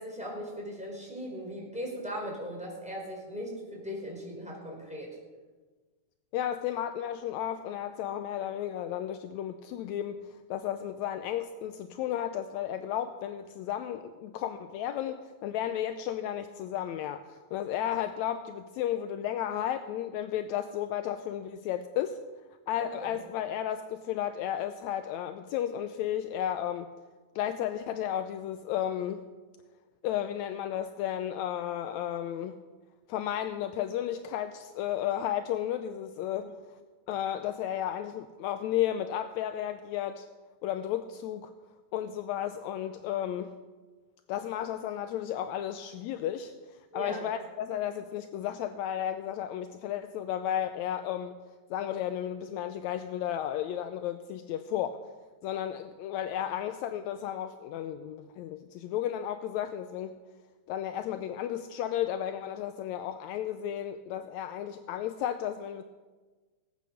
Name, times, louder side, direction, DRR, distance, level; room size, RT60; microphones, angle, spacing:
voice 1, 0.0-5.2 22.8-23.1 36.4-36.5 46.9-47.3, equal, ahead, -3 dB, 4.3 m, -38 dB
voice 2, 6.3-22.2 22.7-26.9 27.4-29.2 30.0-32.6 33.1-36.5 37.1-40.3 40.6-41.5 41.9-43.5 44.3-46.5 46.9-51.4 51.7-55.0 55.4-60.2 60.7-65.8, left 11 dB, 80° left, 9 dB, 1.9 m, -33 dB
19.0 x 8.6 x 6.4 m, 1.3 s
omnidirectional pair, 3.4 m